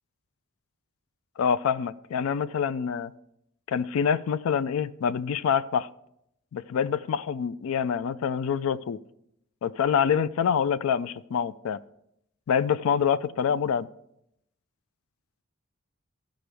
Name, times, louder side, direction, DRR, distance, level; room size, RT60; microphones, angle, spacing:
voice 1, 1.4-3.1 3.7-5.9 6.5-9.0 9.6-11.8 12.5-13.9, left 7 dB, 70° left, 16 dB, 0.3 m, -26 dB
13.5 x 5.1 x 3.3 m, 0.77 s
head